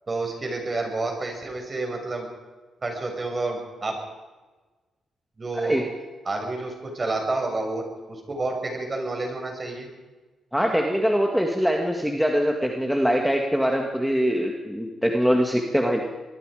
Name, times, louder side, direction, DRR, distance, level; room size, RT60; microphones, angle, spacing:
voice 1, 0.1-2.3 2.8-4.0 5.4-5.8 6.2-7.8 8.1-9.9, right 2 dB, 30° right, 3 dB, 6.1 m, -29 dB
voice 2, 10.5-16.0, equal, ahead, 1 dB, 2.1 m, -23 dB
25.5 x 20.5 x 5.1 m, 1.3 s
cardioid pair, 115°, 0 cm